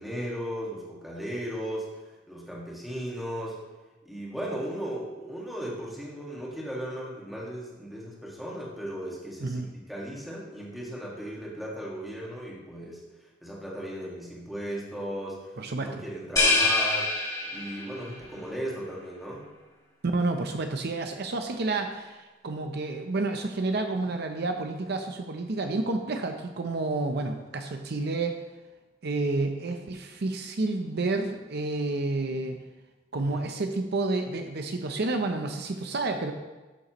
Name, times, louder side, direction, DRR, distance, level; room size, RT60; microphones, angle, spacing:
voice 1, 0.0-1.9 2.3-3.6 4.1-13.0 13.4-17.1 17.5-19.4 33.1-33.4, equal, ahead, -5 dB, 1.8 m, -36 dB
voice 2, 15.6-16.0 20.0-28.4 29.0-32.6 33.1-36.3, right 2 dB, 60° right, 5 dB, 0.7 m, -30 dB
sound 1, 16.4-18.1, left 3 dB, 20° left, 2.2 m, -25 dB
12.0 x 6.8 x 3.0 m, 1.2 s
head